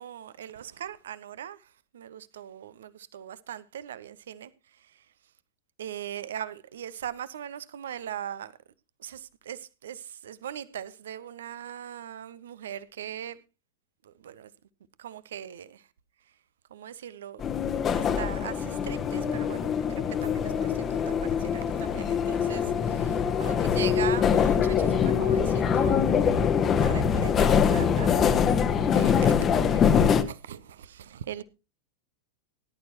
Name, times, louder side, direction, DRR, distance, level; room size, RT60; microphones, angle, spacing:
voice 1, 0.0-1.6 1.9-4.5 5.8-8.5 9.0-9.2 9.5-13.4 14.2-14.5 15.0-15.7 16.7-17.4 17.9-21.1 21.5-22.6 23.4-26.0 26.8-28.2 28.9-29.3 29.7-31.4, right 10 dB, 60° right, 0.8 m, -39 dB
sound 1, 17.4-30.2, left 7 dB, 25° left, 1.1 m, -24 dB
18.5 x 11.0 x 2.9 m
figure-of-eight pair, 90°, 0 cm